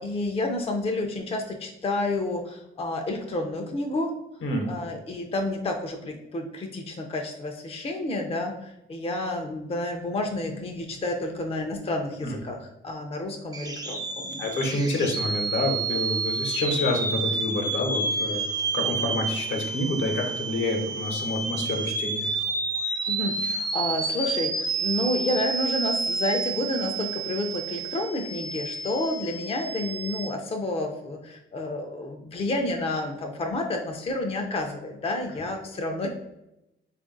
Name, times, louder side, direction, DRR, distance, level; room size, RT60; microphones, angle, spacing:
voice 1, 0.0-4.1 4.7-14.5 23.1-36.1, left 2 dB, 30° left, 3 dB, 0.5 m, -30 dB
sound 1, 13.5-30.3, right 4 dB, 20° right, 0.5 m, -30 dB
voice 2, 14.4-18.4 18.7-22.3, left 2 dB, 70° left, 2 dB, 1.0 m, -28 dB
3.6 x 2.5 x 3.8 m, 0.89 s
cardioid pair, 90°, 20 cm